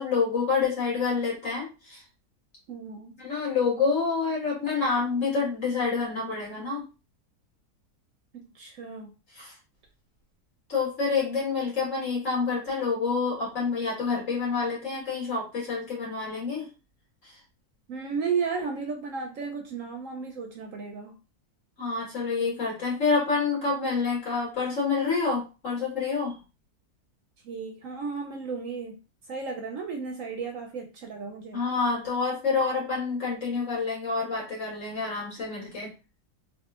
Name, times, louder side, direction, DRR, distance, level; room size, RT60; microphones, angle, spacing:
voice 1, 0.0-2.0 3.2-6.8 9.4-9.5 10.7-16.7 17.2-17.3 21.8-26.4 31.5-35.9, left 4 dB, 55° left, -4 dB, 1.9 m, -28 dB
voice 2, 2.7-3.2 8.3-9.1 17.9-21.2 27.4-29.0 29.3-31.6, right 5 dB, 70° right, 3 dB, 0.8 m, -34 dB
3.6 x 2.4 x 2.3 m, 0.31 s
omnidirectional pair, 1.7 m